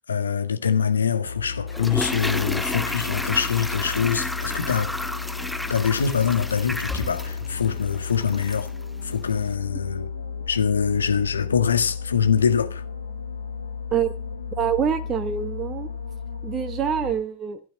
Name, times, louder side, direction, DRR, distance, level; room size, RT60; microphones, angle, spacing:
voice 1, 0.1-4.9 5.7-8.7 9.0-10.1 10.5-12.8, left 7 dB, 70° left, 1.6 m, -24 dB
sound 1, 1.2-17.1, left 5 dB, 85° left, 3.6 m, -34 dB
Toilet flush, 1.7-8.8 9.0-9.1, left 1 dB, 5° left, 0.7 m, -32 dB
voice 2, 14.6-15.9 16.4-17.6, right 8 dB, 25° right, 1.2 m, -25 dB
15.5 x 9.9 x 5.4 m
figure-of-eight pair, 90°, 0 cm